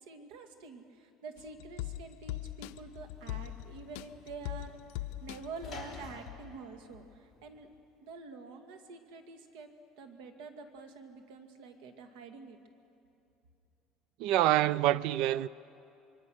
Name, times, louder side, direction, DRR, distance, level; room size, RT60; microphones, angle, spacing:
voice 1, 0.0-4.8 5.2-7.7 8.0-12.6, right 4 dB, 80° right, 2.1 m, -47 dB
sound 1, 1.4-6.6 6.9-7.0, left 15 dB, 85° left, 0.6 m, -42 dB
Sliding door / Slam, 2.0-7.8, left 6 dB, 25° left, 3.5 m, -52 dB
voice 2, 14.2-15.5, right 14 dB, 65° right, 0.5 m, -26 dB
26.0 x 23.0 x 6.4 m
cardioid pair, 155°, 0 cm